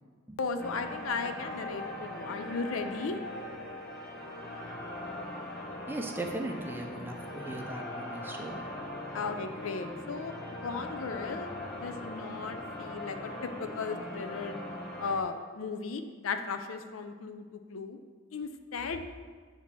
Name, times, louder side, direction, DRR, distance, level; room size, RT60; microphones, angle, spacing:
voice 1, 0.4-3.2 9.1-10.3 10.6-11.5 11.8-14.5 15.0-18.0 18.3-19.0, left 4 dB, 90° left, 8 dB, 0.5 m, -36 dB
sound 1, 0.6-15.2, left 1 dB, 50° left, 1.0 m, -40 dB
voice 2, 5.9-8.7, right 2 dB, 10° right, 2 dB, 0.5 m, -38 dB
8.4 x 2.9 x 5.9 m, 1.5 s
head